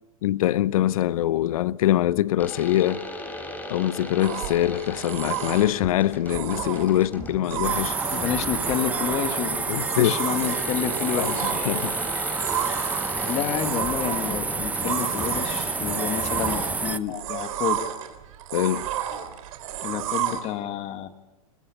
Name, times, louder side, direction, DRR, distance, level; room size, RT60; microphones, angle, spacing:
voice 1, 0.2-3.0 3.7-7.9 9.7-10.3 11.1-12.0 17.1-17.2 18.5-18.9, left 13 dB, 70° left, 0.8 m, -24 dB
sound 1, 2.4-9.0 10.4-17.0, left 1 dB, 10° left, 3.5 m, -37 dB
sound 2, 4.2-20.4, right 11 dB, 65° right, 3.3 m, -32 dB
sound 3, 7.6-17.0, right 3 dB, 10° right, 0.8 m, -29 dB
voice 2, 8.1-9.6 10.0-11.5 13.3-17.8 19.8-21.1, left 10 dB, 35° left, 2.0 m, -29 dB
22.5 x 20.5 x 8.6 m
hypercardioid pair, 125°, 19 cm